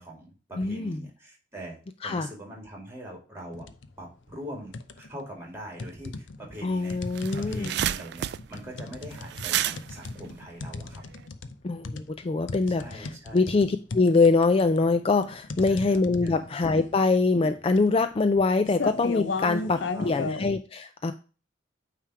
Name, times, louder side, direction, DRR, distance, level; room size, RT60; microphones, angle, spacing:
voice 1, 0.0-3.7 4.0-7.0 7.3-11.0 12.7-13.5 15.6-16.4 19.6-20.4, right 1 dB, 15° right, -1 dB, 2.4 m, -43 dB
voice 2, 0.6-1.0 2.0-2.3 6.6-7.7 11.6-21.1, left 3 dB, 30° left, 10 dB, 0.4 m, -24 dB
sound 1, 3.5-3.9 4.3-5.2 5.8-20.5, left 3 dB, 85° left, 0.6 m, -36 dB
sound 2, 6.6-6.7 6.9-11.2, right 11 dB, 60° right, 0.3 m, -31 dB
8.9 x 3.3 x 4.8 m, 0.36 s
head